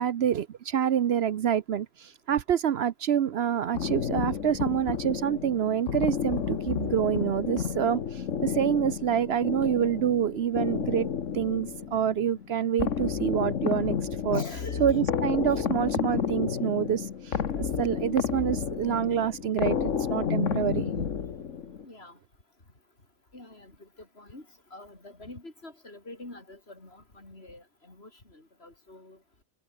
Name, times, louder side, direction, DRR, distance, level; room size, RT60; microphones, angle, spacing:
voice 1, 0.0-11.1 11.3-14.0 14.2-14.4 14.8-20.9, right 9 dB, 65° right, 0.9 m, -27 dB
sound 1, 3.7-21.9, left 7 dB, 85° left, 1.6 m, -31 dB
voice 2, 14.3-15.0 21.8-22.2 23.3-29.2, left 2 dB, 55° left, 5.2 m, -46 dB
omnidirectional pair, 1.2 m